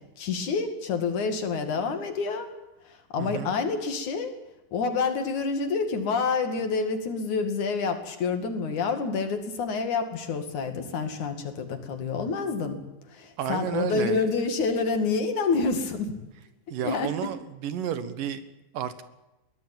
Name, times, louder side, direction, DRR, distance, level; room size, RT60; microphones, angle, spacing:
voice 1, 0.2-2.5 2.9-4.3 4.7-12.8 13.1-16.1 16.8-17.1, left 4 dB, 65° left, 7 dB, 3.7 m, -28 dB
voice 2, 3.2-3.5 13.4-14.2 16.7-18.5 18.7-19.0, right 9 dB, 80° right, 12 dB, 3.0 m, -31 dB
22.5 x 17.5 x 9.1 m, 0.97 s
omnidirectional pair, 3.9 m